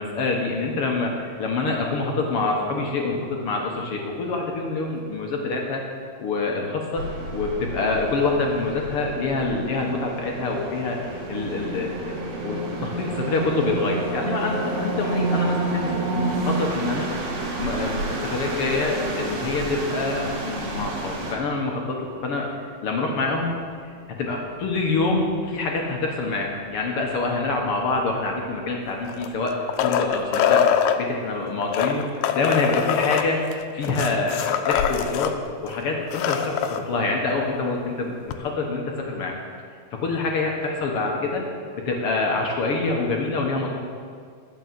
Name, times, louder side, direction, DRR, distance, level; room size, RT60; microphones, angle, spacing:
voice 1, 0.0-5.8 6.2-17.1 17.6-22.5 22.8-23.6 24.1-35.4 35.6-39.4 39.9-41.4 41.8-43.9, left 3 dB, 60° left, 0 dB, 1.7 m, -26 dB
sound 1, 6.9-21.3, right 2 dB, 90° right, 3.7 m, -29 dB
sound 2, 29.1-31.0 31.6-35.3 35.7-35.8 36.0-36.8 38.3-38.4, left 9 dB, 85° left, 2.3 m, -23 dB
12.0 x 7.0 x 7.6 m, 2.1 s
omnidirectional pair, 3.9 m